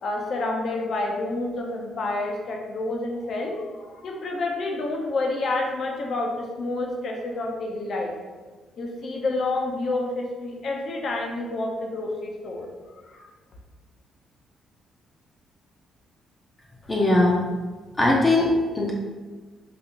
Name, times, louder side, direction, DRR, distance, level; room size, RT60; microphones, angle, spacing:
voice 1, 0.0-8.1 8.8-12.7 13.1-13.2, left 2 dB, 60° left, 0 dB, 0.7 m, -29 dB
voice 2, 16.9-17.4 18.0-18.9, left 2 dB, 20° left, -3 dB, 0.6 m, -20 dB
4.0 x 2.4 x 2.9 m, 1.4 s
cardioid pair, 90°, 0 cm